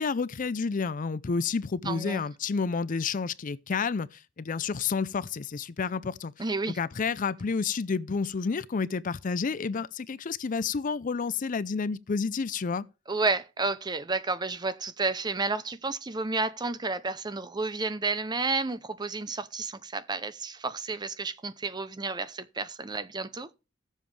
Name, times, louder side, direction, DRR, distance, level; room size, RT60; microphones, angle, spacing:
voice 1, 0.0-6.3 6.8-12.8, left 5 dB, 40° left, 0.5 m, -30 dB
voice 2, 1.8-2.3 6.4-6.8 13.1-23.5, right 3 dB, 20° right, 0.6 m, -31 dB
16.0 x 7.3 x 3.3 m
head